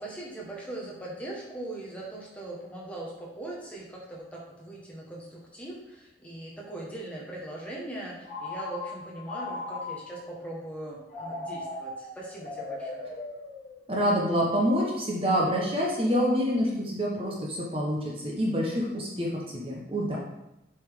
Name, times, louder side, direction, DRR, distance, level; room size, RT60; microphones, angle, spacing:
voice 1, 0.0-13.1, right 1 dB, 5° left, -4 dB, 1.5 m, -40 dB
Telephone, 8.2-10.3 11.1-14.1, left 2 dB, 40° left, 2.7 m, -38 dB
voice 2, 13.9-20.2, equal, 30° right, -3 dB, 1.1 m, -27 dB
7.5 x 5.5 x 3.7 m, 0.89 s
head